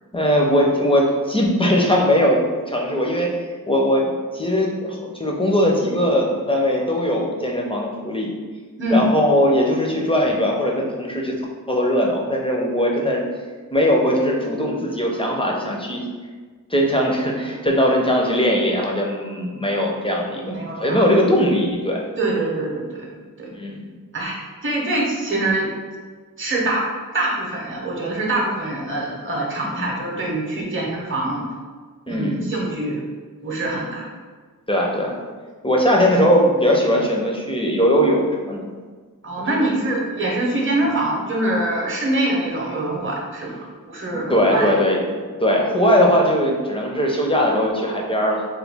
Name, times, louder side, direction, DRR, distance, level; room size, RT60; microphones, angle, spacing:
voice 1, 0.1-2.4 2.7-3.3 3.7-8.3 8.9-11.3 11.7-13.2 13.7-16.0 16.7-22.0 23.5-23.8 29.6-29.9 32.1-32.4 34.7-35.2 35.6-38.6 40.8-40.9 44.1-45.0 45.4-48.5, equal, 15° left, -1 dB, 0.5 m, -20 dB
voice 2, 8.8-9.1 20.4-21.0 22.2-23.1 23.4-23.5 24.1-25.7 26.4-26.9 27.1-31.5 32.1-33.0 33.4-34.0 39.2-43.6 43.9-44.7, right 1 dB, 35° right, -3 dB, 0.7 m, -24 dB
3.0 x 2.2 x 3.4 m, 1.5 s
wide cardioid pair, 50°, 35 cm